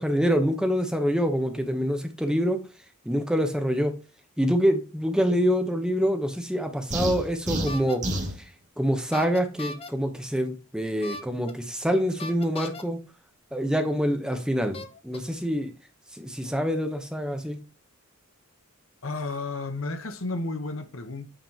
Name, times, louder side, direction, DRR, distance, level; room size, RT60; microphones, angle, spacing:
voice 1, 0.0-2.6 3.1-3.9 4.4-8.0 8.8-13.0 13.5-15.7 16.1-17.6, equal, 5° right, 0.8 m, -26 dB
sound 1, 6.9-8.4, right 1 dB, 35° right, 2.0 m, -29 dB
sound 2, 7.7-8.0 9.1-9.9 11.0-11.5 12.2-12.8 13.9-14.0 14.7-15.2, left 2 dB, 25° left, 0.7 m, -38 dB
voice 2, 19.0-21.4, left 3 dB, 65° left, 1.0 m, -32 dB
8.9 x 4.9 x 2.8 m
head